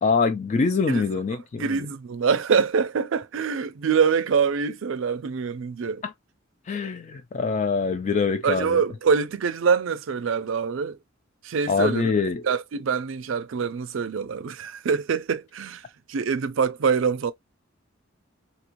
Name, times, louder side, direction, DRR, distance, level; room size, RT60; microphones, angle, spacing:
voice 1, 0.0-1.8 6.0-6.1 6.7-8.8 11.7-12.4, left 4 dB, 35° left, 0.3 m, -24 dB
voice 2, 1.6-6.0 8.4-11.0 11.4-12.1 12.4-17.3, right 6 dB, 70° right, 0.4 m, -25 dB
3.0 x 2.8 x 2.5 m
head